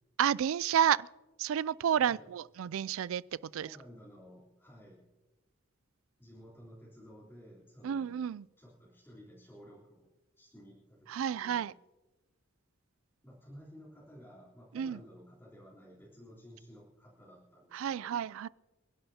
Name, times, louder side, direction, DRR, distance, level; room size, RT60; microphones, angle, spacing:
voice 1, 0.2-1.1 1.4-3.2 3.5-3.8 7.8-8.5 11.1-11.7 14.7-15.0 17.7-18.5, right 9 dB, 75° right, 0.3 m, -30 dB
voice 2, 1.9-2.3 3.6-5.1 6.2-8.2 8.6-10.1 10.4-11.7 13.2-18.2, equal, 10° left, 3.5 m, -54 dB
28.0 x 11.0 x 2.8 m
head